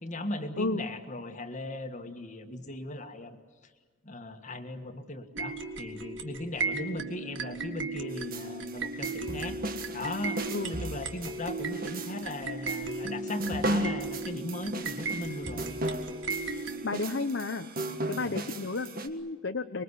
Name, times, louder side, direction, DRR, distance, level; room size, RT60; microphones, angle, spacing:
voice 1, 0.0-3.4 4.0-9.6 9.9-10.4 10.7-15.8 18.2-18.4, left 1 dB, 35° left, 7 dB, 1.7 m, -38 dB
sound 1, 5.3-17.1, right 3 dB, 60° right, 1.9 m, -36 dB
sound 2, 8.1-19.1, right 1 dB, 45° right, 1.6 m, -36 dB
voice 2, 16.8-17.7 18.1-19.8, left 3 dB, 60° left, 6 dB, 0.9 m, -32 dB
25.5 x 22.0 x 8.2 m, 1.4 s
head